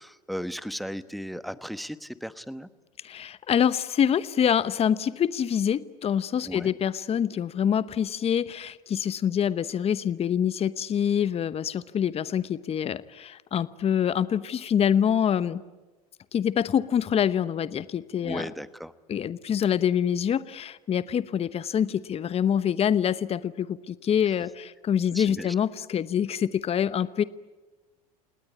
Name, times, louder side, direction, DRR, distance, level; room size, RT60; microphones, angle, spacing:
voice 1, 0.0-2.7 6.4-6.7 18.2-18.9 25.1-25.5, equal, ahead, 14 dB, 1.1 m, -36 dB
voice 2, 3.0-15.6 16.3-18.4 19.1-27.2, left 8 dB, 30° left, 16 dB, 1.0 m, -25 dB
29.5 x 19.0 x 8.8 m, 1.2 s
hypercardioid pair, 85°, 20 cm